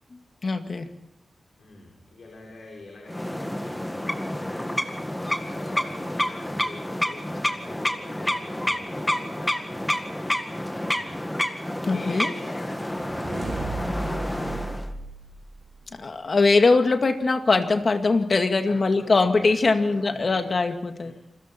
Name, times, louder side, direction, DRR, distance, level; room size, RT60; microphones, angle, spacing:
voice 1, 0.4-0.9 11.8-12.3 15.9-21.1, left 3 dB, 50° left, 6 dB, 2.0 m, -21 dB
voice 2, 1.6-4.8 5.1-11.3 11.9-14.9 18.6-20.6 21.0-21.1, left 2 dB, 70° left, -2 dB, 5.5 m, -45 dB
sound 1, 3.1-14.9, left 1 dB, 10° left, 1.9 m, -29 dB
sound 2, 12.8-16.0, right 3 dB, 70° right, 4.4 m, -36 dB
29.0 x 21.5 x 4.4 m, 0.81 s
cardioid pair, 70°, 0 cm